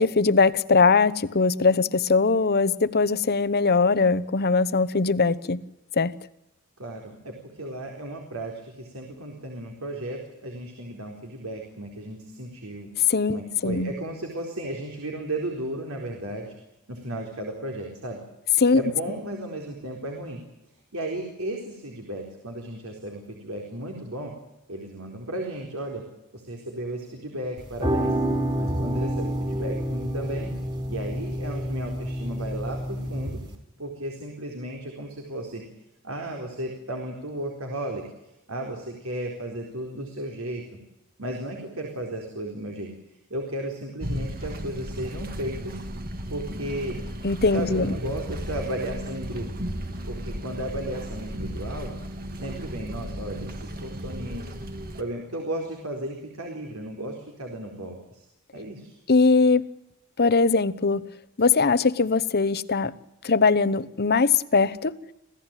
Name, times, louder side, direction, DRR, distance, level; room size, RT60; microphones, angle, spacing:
voice 1, 0.0-5.6 5.9-6.1 13.1-13.9 18.6-18.8 47.2-47.9 59.1-59.6 60.2-61.0 61.4-62.9 63.2-64.9, left 4 dB, 45° left, 1.0 m, -21 dB
voice 2, 6.8-12.9 13.3-16.5 16.9-18.2 18.7-20.4 20.9-24.3 24.7-26.0 26.3-28.1 28.6-30.5 30.9-33.4 33.8-35.6 36.0-38.0 38.5-40.8 41.2-42.9 43.3-45.8 46.3-47.0 47.5-49.5 50.0-51.9 52.4-54.5 55.0-58.2 58.5-59.0, right 1 dB, 65° right, 4.2 m, -34 dB
sound 1, 27.6-33.6, right 1 dB, 25° right, 4.6 m, -28 dB
sound 2, 44.0-55.0, equal, 40° right, 2.3 m, -35 dB
27.0 x 16.5 x 9.1 m
head